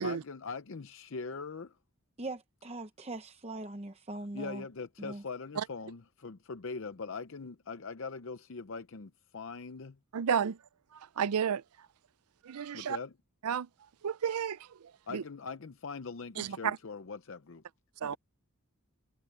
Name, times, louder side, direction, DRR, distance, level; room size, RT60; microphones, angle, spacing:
voice 1, 0.0-1.8 4.3-10.0 12.7-13.1 15.1-17.6 18.0-18.2, left 4 dB, 60° left, 0.6 m, -42 dB
voice 2, 2.2-4.7 5.0-5.2, right 2 dB, 25° right, 0.8 m, -41 dB
voice 3, 10.1-10.6 10.9-11.6 12.4-13.0 13.4-13.7 14.0-15.2 16.4-16.8 18.0-18.2, right 7 dB, 85° right, 0.5 m, -32 dB
head